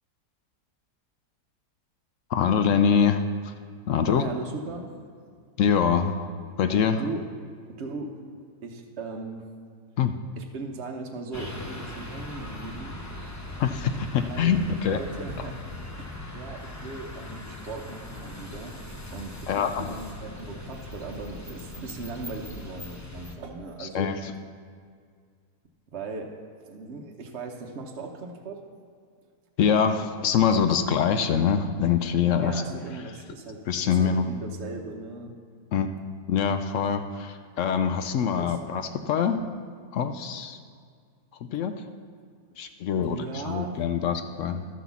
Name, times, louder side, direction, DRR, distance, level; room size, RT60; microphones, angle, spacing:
voice 1, 2.3-3.5 3.9-4.2 5.6-6.3 6.6-7.0 10.0-10.1 13.6-15.0 19.5-19.9 23.8-24.3 29.6-32.6 33.7-34.2 35.7-35.9 36.3-39.4 39.9-40.6 41.4-41.7 42.6-44.7, left 7 dB, 65° left, 9 dB, 0.8 m, -24 dB
voice 2, 4.1-4.9 7.0-7.2 7.8-8.2 8.6-9.5 10.4-13.0 14.3-14.6 14.9-15.6 16.0-18.8 19.1-24.1 25.9-26.3 26.6-28.6 32.4-35.3 38.4-38.6 43.0-43.8, right 3 dB, 50° right, 1 dB, 1.0 m, -38 dB
sound 1, 11.3-23.3, left 1 dB, 15° left, 0.6 m, -40 dB
12.0 x 6.0 x 7.0 m, 2.1 s
omnidirectional pair, 1.7 m